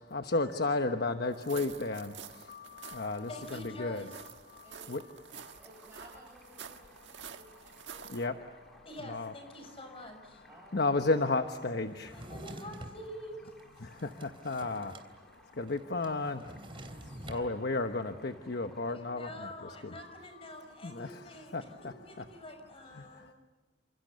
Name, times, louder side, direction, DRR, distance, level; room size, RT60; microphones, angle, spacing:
voice 1, 0.1-5.0 8.1-8.3 9.0-9.3 10.7-12.2 13.8-14.9 15.6-16.4 17.3-20.5 20.8-22.2 22.9-23.1, left 3 dB, 65° left, 6 dB, 1.1 m, -33 dB
sound 1, 1.3-8.3, right 7 dB, 85° right, 1.5 m, -49 dB
voice 2, 3.3-4.1 8.8-10.4 12.1-13.5 18.9-21.6 22.0-23.3, left 1 dB, 35° left, 6 dB, 6.1 m, -46 dB
voice 3, 4.6-4.9 5.3-8.3 10.4-10.9 13.9-14.2 17.1-17.5, right 1 dB, 15° right, -4 dB, 7.4 m, -57 dB
Stream, 5.3-18.9, equal, 5° left, 3.3 m, -63 dB
Drawer open or close, 12.0-13.0 13.6-15.1 15.3-15.4 15.7-17.5, right 1 dB, 30° right, 3.2 m, -46 dB
29.0 x 27.5 x 6.9 m, 1.2 s
head